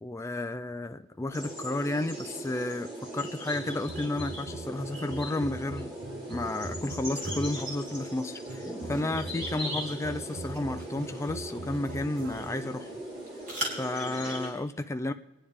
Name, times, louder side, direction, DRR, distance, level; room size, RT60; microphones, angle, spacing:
voice 1, 0.0-5.9 6.3-12.9 13.8-15.1, left 2 dB, 15° left, 0.4 m, -32 dB
sound 1, 1.3-14.5, right 1 dB, 25° right, 4.0 m, -39 dB
sound 2, 3.5-7.8 8.5-12.7, right 2 dB, 85° right, 0.8 m, -42 dB
sound 3, 6.5-14.1, right 1 dB, 40° right, 3.6 m, -44 dB
26.0 x 10.0 x 3.5 m
head